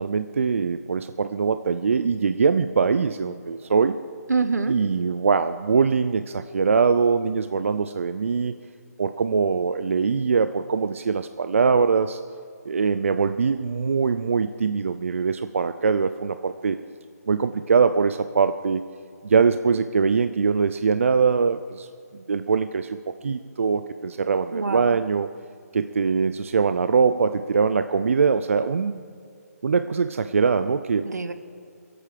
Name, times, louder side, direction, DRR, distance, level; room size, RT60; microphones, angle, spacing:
voice 1, 0.0-4.0 4.7-8.6 9.0-12.2 12.7-16.8 17.3-18.8 19.2-21.9 22.1-23.0 23.2-25.3 25.7-29.0 29.6-31.1, right 5 dB, 50° right, 10 dB, 0.4 m, -22 dB
voice 2, 4.3-4.7 24.5-25.0 31.0-31.3, right 4 dB, 85° right, 10 dB, 1.1 m, -25 dB
24.5 x 8.7 x 5.0 m, 2.4 s
hypercardioid pair, 170°, 9 cm